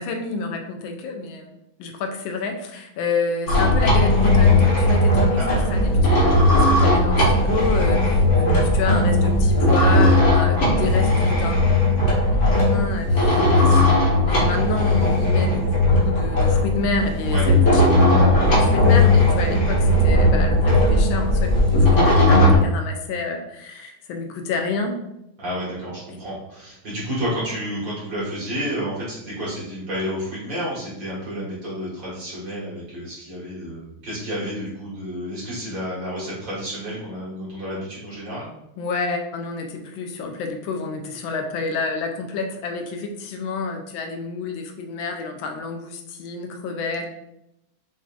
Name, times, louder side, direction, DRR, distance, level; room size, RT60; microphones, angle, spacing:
voice 1, 0.0-1.5 1.8-5.9 6.5-11.6 12.7-17.8 18.5-25.0 38.8-47.1, left 4 dB, 75° left, 4 dB, 1.4 m, -29 dB
sound 1, 3.5-22.6, left 1 dB, 40° left, 1.5 m, -17 dB
voice 2, 5.4-5.7 17.3-17.4 25.4-38.5, equal, 60° right, -7 dB, 2.5 m, -30 dB
6.2 x 2.8 x 2.5 m, 0.83 s
omnidirectional pair, 2.3 m